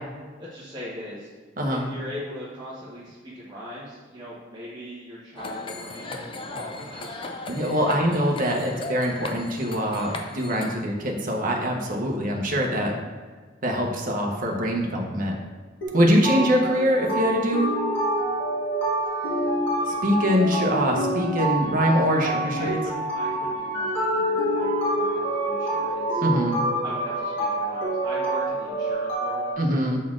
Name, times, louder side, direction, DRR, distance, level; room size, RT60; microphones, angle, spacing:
voice 1, 0.4-1.3 1.7-7.3 7.7-8.1 8.4-8.6 12.2-12.4 19.2-19.5 22.1-26.2 26.8-29.4, equal, 20° right, -9 dB, 1.0 m, -40 dB
sound 1, 5.4-10.8, left 2 dB, 25° left, 0.5 m, -37 dB
voice 2, 7.5-12.9 13.6-15.3 15.9-17.7 19.9-22.8 26.2-26.6 29.6-30.0, equal, 45° right, 0 dB, 0.9 m, -23 dB
sound 2, 15.8-29.5, right 1 dB, 70° left, 1.7 m, -27 dB
7.3 x 4.2 x 3.7 m, 1.4 s
head